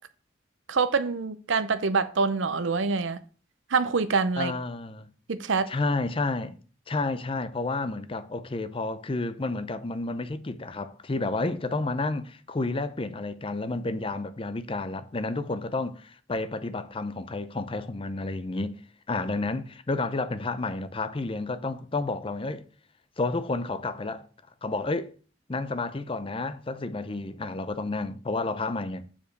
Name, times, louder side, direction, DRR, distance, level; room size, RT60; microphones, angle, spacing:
voice 1, 0.7-3.2 3.7-4.5 5.3-5.7, right 4 dB, 80° right, 0.6 m, -25 dB
voice 2, 4.4-5.1 5.7-6.6 6.9-18.8 19.1-22.6 23.2-24.3 24.6-25.1 25.5-29.1, left 3 dB, 30° left, 0.6 m, -31 dB
7.1 x 5.1 x 6.4 m
head